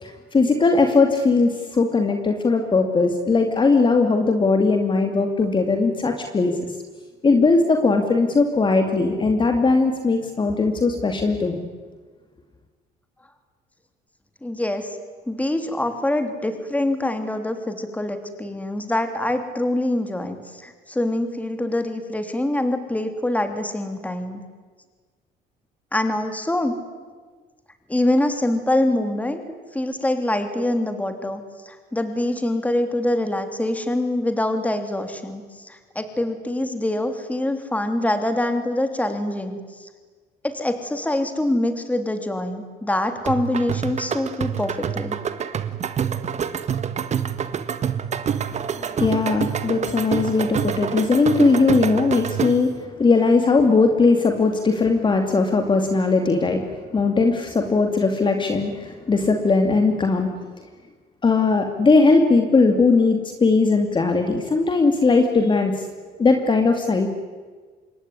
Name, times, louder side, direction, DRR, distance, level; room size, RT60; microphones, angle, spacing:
voice 1, 0.0-6.6 7.2-11.7 48.5-56.6 56.9-60.3 61.2-65.7 66.2-67.1, left 3 dB, 30° left, 4 dB, 2.5 m, -19 dB
voice 2, 14.4-15.0 15.3-24.4 25.9-26.8 27.9-29.4 29.7-31.4 31.6-39.6 40.4-45.2, left 1 dB, 10° left, 7 dB, 3.3 m, -24 dB
sound 1, 43.3-52.8, right 8 dB, 40° right, 1.6 m, -27 dB
26.5 x 21.5 x 9.9 m, 1.5 s
cardioid pair, 110°, 17 cm